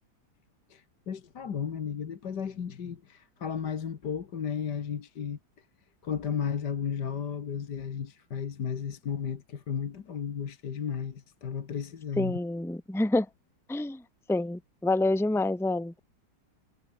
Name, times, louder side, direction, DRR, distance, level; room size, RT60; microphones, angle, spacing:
voice 1, 0.7-5.4 6.0-12.3, left 7 dB, 60° left, 2.2 m, -34 dB
voice 2, 12.2-13.3 13.7-14.0 14.3-16.0, left 2 dB, ahead, 1.5 m, -27 dB
omnidirectional pair, 2.0 m